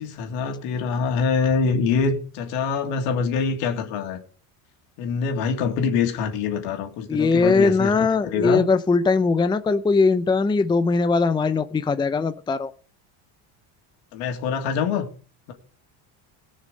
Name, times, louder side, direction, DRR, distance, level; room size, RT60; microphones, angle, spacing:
voice 1, 0.0-4.2 5.0-7.9 8.2-8.6 14.1-15.1, left 5 dB, 85° left, 4 dB, 2.9 m, -24 dB
voice 2, 7.1-12.7, left 4 dB, 10° left, 12 dB, 0.5 m, -20 dB
18.0 x 6.5 x 5.4 m, 0.41 s
cardioid pair, 115°, 49 cm